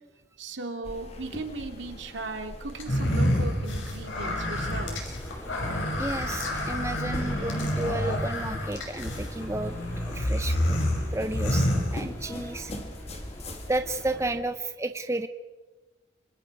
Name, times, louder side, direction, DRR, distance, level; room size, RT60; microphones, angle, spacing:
voice 1, 0.4-5.2, right 2 dB, 75° right, 5 dB, 2.5 m, -37 dB
sound 1, 0.8-13.8, left 1 dB, 35° left, 2.5 m, -43 dB
sound 2, 2.8-12.5, left 1 dB, 90° left, 5.9 m, -28 dB
sound 3, 4.6-14.4, equal, 15° left, 2.8 m, -42 dB
voice 2, 6.0-10.8 11.1-12.7 13.7-15.3, right 2 dB, 15° right, 9 dB, 0.7 m, -32 dB
26.5 x 25.5 x 4.7 m, 1.2 s
head